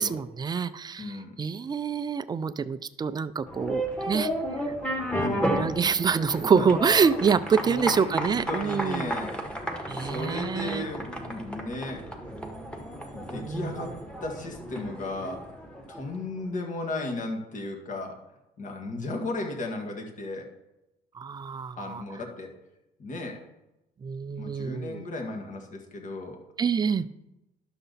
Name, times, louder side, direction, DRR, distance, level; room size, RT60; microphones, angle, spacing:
voice 1, 0.0-4.3 5.4-9.1 9.9-10.8 13.3-13.8 21.1-22.0 24.0-25.0 26.6-27.1, right 6 dB, 25° right, 13 dB, 0.4 m, -26 dB
voice 2, 1.0-1.4 5.3-5.7 6.3-6.7 7.6-9.4 10.0-12.0 13.1-13.9 14.2-15.4 15.9-18.2 18.6-20.5 21.8-22.5 23.0-23.4 24.4-26.4, left 2 dB, 50° left, 2 dB, 1.9 m, -35 dB
sound 1, 3.5-16.2, right 1 dB, 5° left, 1.4 m, -33 dB
11.0 x 6.8 x 4.1 m, 0.93 s
cardioid pair, 110°, 17 cm